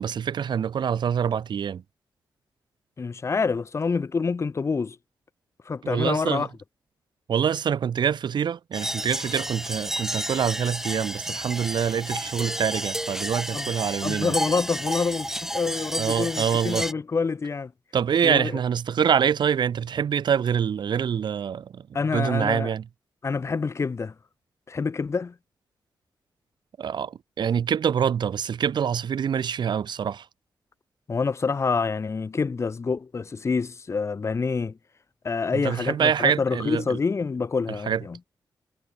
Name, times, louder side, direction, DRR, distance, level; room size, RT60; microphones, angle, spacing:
voice 1, 0.0-1.8 5.8-6.5 7.3-14.3 16.0-16.9 17.9-21.9 22.1-22.8 26.8-30.2 35.5-37.0 37.9-38.0, right 8 dB, 70° right, 1.2 m, -25 dB
voice 2, 3.0-5.0 5.7-6.5 13.5-13.7 14.0-17.7 18.2-18.5 21.9-22.7 23.2-24.1 24.7-25.3 31.1-34.8 35.2-38.2, left 4 dB, 35° left, 0.7 m, -27 dB
sound 1, 8.7-16.9, right 1 dB, 5° right, 1.0 m, -31 dB
cardioid pair, 80°, 8 cm